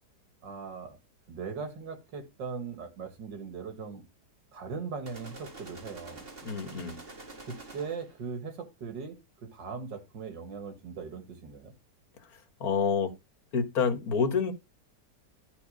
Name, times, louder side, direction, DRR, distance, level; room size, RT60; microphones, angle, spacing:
voice 1, 0.4-1.0 1.3-4.0 4.5-6.2 7.4-11.7, right 5 dB, 90° right, 2.3 m, -39 dB
sound 1, 5.1-8.2, right 3 dB, 35° right, 2.1 m, -47 dB
voice 2, 6.4-7.0 12.3-13.1 13.5-14.5, left 6 dB, 55° left, 1.9 m, -28 dB
12.5 x 4.2 x 5.4 m
omnidirectional pair, 1.9 m